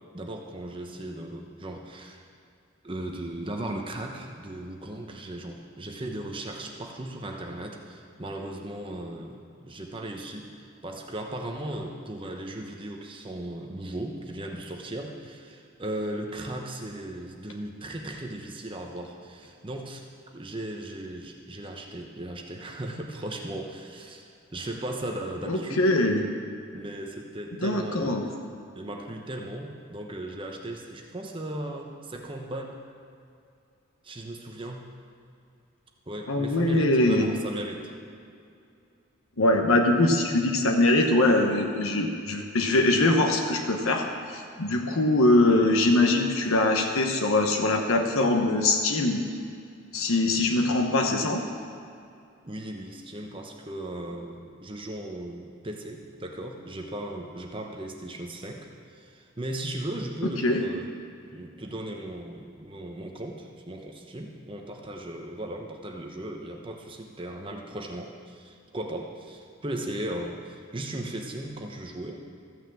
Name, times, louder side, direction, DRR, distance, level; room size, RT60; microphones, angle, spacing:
voice 1, 0.1-2.2 2.8-20.0 20.3-25.9 26.7-28.3 28.7-32.8 34.0-34.8 36.1-37.9 52.4-60.9 61.3-72.2, right 1 dB, 25° right, 2 dB, 0.9 m, -37 dB
voice 2, 25.5-26.3 27.6-28.2 36.3-37.3 39.4-49.2 49.9-51.4 60.4-60.6, left 2 dB, 90° left, 3 dB, 1.0 m, -22 dB
14.0 x 6.3 x 7.4 m, 2.4 s
head